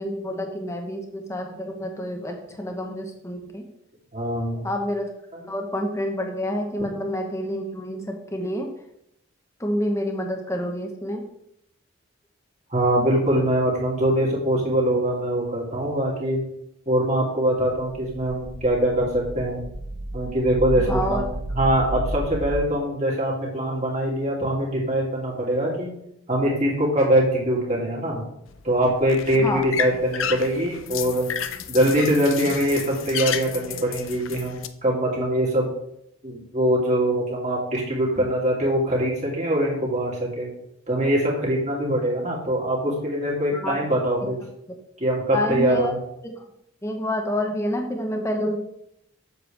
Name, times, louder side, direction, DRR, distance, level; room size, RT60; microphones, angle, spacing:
voice 1, 0.0-3.7 4.6-5.1 5.5-8.7 9.6-11.3 20.8-21.2 29.4-29.6 43.5-43.7 45.3-45.9 46.2-46.3 46.8-48.6, left 1 dB, 15° left, 3 dB, 1.0 m, -28 dB
voice 2, 4.1-4.6 5.3-5.4 12.7-16.4 16.9-19.6 20.1-21.2 21.5-25.9 26.3-28.2 28.6-31.3 31.7-35.7 36.2-40.5 40.9-44.3 45.0-46.0, right 1 dB, 35° right, -3 dB, 2.5 m, -23 dB
sound 1, 18.5-22.5, right 1 dB, 85° right, 1.0 m, -32 dB
sound 2, 28.5-34.7, left 9 dB, 80° left, 0.5 m, -32 dB
8.1 x 6.9 x 3.3 m, 0.77 s
head